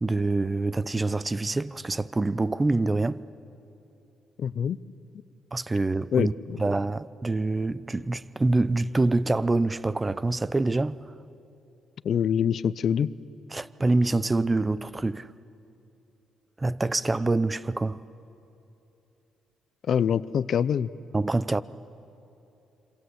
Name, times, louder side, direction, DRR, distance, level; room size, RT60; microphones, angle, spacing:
voice 1, 0.0-3.2 5.5-6.3 6.6-11.0 13.5-15.3 16.6-18.0 21.1-21.6, right 2 dB, 20° right, 0.6 m, -25 dB
voice 2, 4.4-4.8 6.1-6.6 12.0-13.1 19.9-20.9, left 8 dB, 60° left, 0.6 m, -25 dB
27.0 x 26.0 x 8.1 m
cardioid pair, 90°, 0 cm